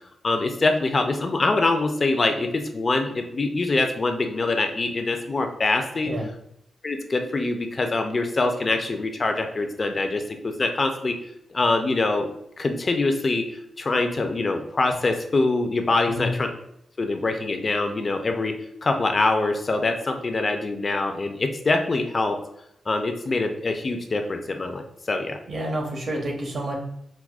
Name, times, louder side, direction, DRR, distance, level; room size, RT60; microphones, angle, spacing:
voice 1, 0.2-6.1 6.8-11.2 11.5-12.3 12.6-13.4 13.8-16.5 17.0-18.5 18.8-22.4 22.9-24.8 25.1-25.4, left 3 dB, 35° left, 5 dB, 0.3 m, -24 dB
voice 2, 25.5-26.8, right 1 dB, 55° right, 1 dB, 0.8 m, -29 dB
4.6 x 2.1 x 2.3 m, 0.77 s
wide cardioid pair, 125°, 0 cm